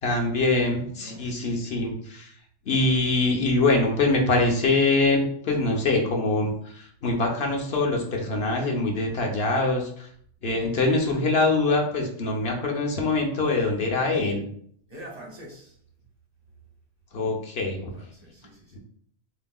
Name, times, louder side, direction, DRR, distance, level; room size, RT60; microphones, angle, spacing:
voice 1, 0.0-2.3 2.7-10.1 10.4-14.4 17.1-17.9, left 2 dB, 55° left, 1 dB, 1.1 m, -24 dB
voice 2, 1.0-1.3 14.9-15.7 17.9-18.8, equal, 30° right, -3 dB, 1.3 m, -44 dB
7.1 x 3.0 x 2.3 m, 0.63 s
omnidirectional pair, 1.3 m